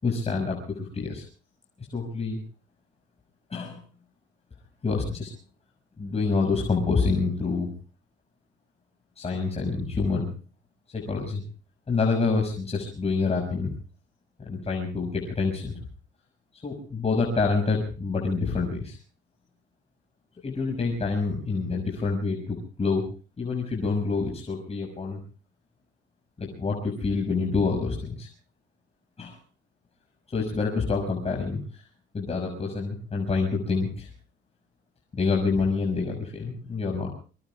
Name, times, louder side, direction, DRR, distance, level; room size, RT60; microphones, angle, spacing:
voice 1, 0.0-1.2 1.9-2.4 3.5-3.8 4.8-5.3 6.0-7.7 9.2-10.3 10.9-11.4 11.9-13.7 14.4-15.8 16.6-19.0 20.4-23.0 23.4-25.2 26.4-28.3 29.2-29.4 30.3-31.6 32.1-34.1 35.1-37.1, left 4 dB, 30° left, 0 dB, 6.6 m, -27 dB
26.0 x 23.5 x 2.4 m, 0.37 s
cardioid pair, 90°, 20 cm